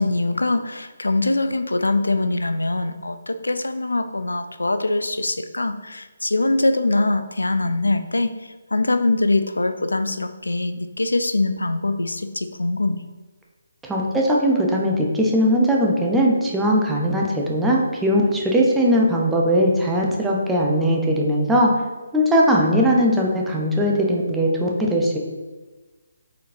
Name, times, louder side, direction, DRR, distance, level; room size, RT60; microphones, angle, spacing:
voice 1, 0.0-8.3 8.7-13.0, left 2 dB, 85° left, 10 dB, 0.3 m, -23 dB
voice 2, 13.8-21.7 22.1-25.2, equal, 5° right, -2 dB, 0.6 m, -19 dB
4.1 x 4.1 x 2.6 m, 1.3 s
figure-of-eight pair, 145°, 0 cm